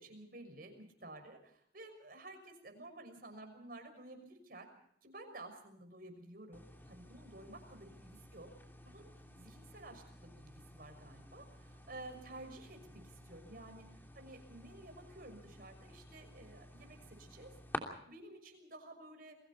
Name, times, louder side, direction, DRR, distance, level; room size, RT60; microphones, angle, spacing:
voice 1, 0.0-4.7 5.0-8.5 8.8-9.1 9.4-19.4, right 2 dB, 50° right, 6 dB, 6.2 m, -53 dB
sound 1, 6.5-17.8, left 1 dB, 10° left, 3.0 m, -51 dB
30.0 x 23.0 x 4.3 m, 0.67 s
head